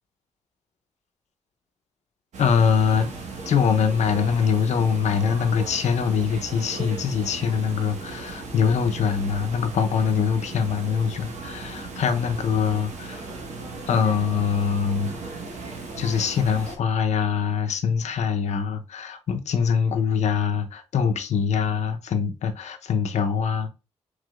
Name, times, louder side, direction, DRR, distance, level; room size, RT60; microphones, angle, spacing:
sound 1, 2.3-16.8, right 3 dB, 85° right, 1.6 m, -37 dB
voice 1, 2.4-3.1 3.5-13.3 13.9-15.2 16.0-23.7, left 6 dB, 75° left, 0.8 m, -23 dB
4.8 x 4.1 x 2.5 m
wide cardioid pair, 135°, 12 cm